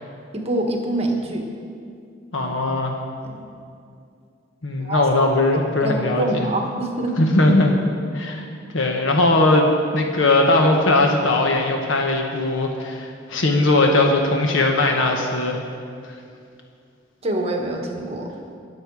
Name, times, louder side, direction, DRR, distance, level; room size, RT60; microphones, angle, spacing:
voice 1, 0.3-1.4 2.4-2.5 4.8-5.0 5.8-7.1 17.2-18.3, right 1 dB, 30° right, 1 dB, 1.5 m, -25 dB
voice 2, 2.3-3.0 4.6-6.4 7.2-7.7 8.1-8.4 8.7-15.6, left 2 dB, 80° left, 2 dB, 1.1 m, -19 dB
22.5 x 7.6 x 4.8 m, 2.4 s
head